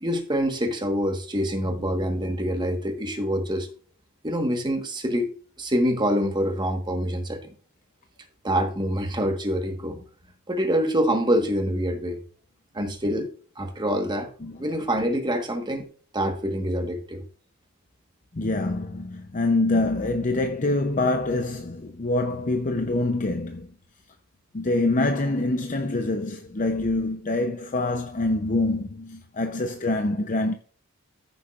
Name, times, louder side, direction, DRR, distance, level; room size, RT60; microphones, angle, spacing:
voice 1, 0.0-3.7 4.2-5.3 5.6-7.5 8.4-10.0 10.5-12.2 12.7-13.3 13.6-14.3 14.6-15.9 16.1-17.2, equal, 20° right, 1.3 m, -25 dB
voice 2, 18.4-23.7 24.5-30.5, left 2 dB, 35° left, 0.7 m, -25 dB
14.0 x 7.0 x 2.4 m
head